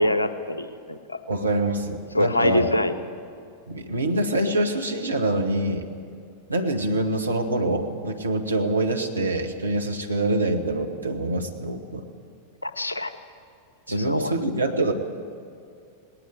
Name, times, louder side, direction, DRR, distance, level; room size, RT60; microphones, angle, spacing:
voice 1, 0.0-1.2 2.1-2.9 12.6-13.1 13.9-14.4, left 1 dB, 80° left, 12 dB, 1.0 m, -24 dB
voice 2, 1.3-2.7 3.7-5.9 6.5-12.1 13.9-14.9, right 2 dB, 80° right, 3 dB, 1.7 m, -25 dB
19.5 x 18.5 x 7.8 m, 2.4 s
figure-of-eight pair, 90°, 0 cm